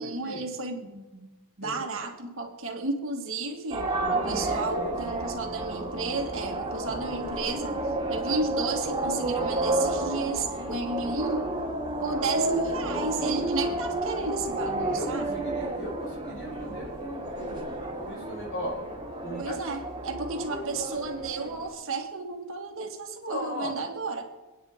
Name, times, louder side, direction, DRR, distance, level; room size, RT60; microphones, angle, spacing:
voice 1, 0.0-1.3 1.6-7.8 8.1-11.5 12.0-15.4 19.4-24.2, right 3 dB, 65° right, 3 dB, 1.9 m, -33 dB
sound 1, 3.7-21.7, right 2 dB, 25° right, 2.4 m, -31 dB
voice 2, 4.2-5.0 14.2-14.4 14.7-18.9 19.2-19.5 23.2-23.7, equal, 60° left, -2 dB, 5.5 m, -37 dB
26.0 x 9.6 x 3.7 m, 1.2 s
head